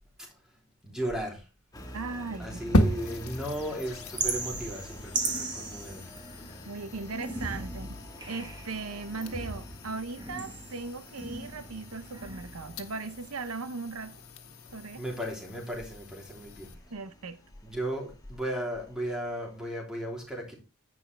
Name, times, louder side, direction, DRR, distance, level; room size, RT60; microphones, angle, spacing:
voice 1, 0.8-1.4 2.4-6.1 14.9-16.7 17.6-20.6, right 1 dB, 5° right, 3.2 m, -35 dB
Engine, 1.7-19.7, equal, 15° left, 1.7 m, -49 dB
voice 2, 1.9-2.9 6.6-8.0 8.3-14.2 14.7-15.0 16.9-17.4, right 3 dB, 85° right, 0.9 m, -38 dB
sound 1, 2.7-16.7, left 1 dB, 90° left, 1.5 m, -36 dB
sound 2, 4.2-6.6 7.1-8.7 9.2-11.7 12.1-12.7, right 3 dB, 20° right, 1.6 m, -37 dB
10.5 x 8.9 x 3.4 m
head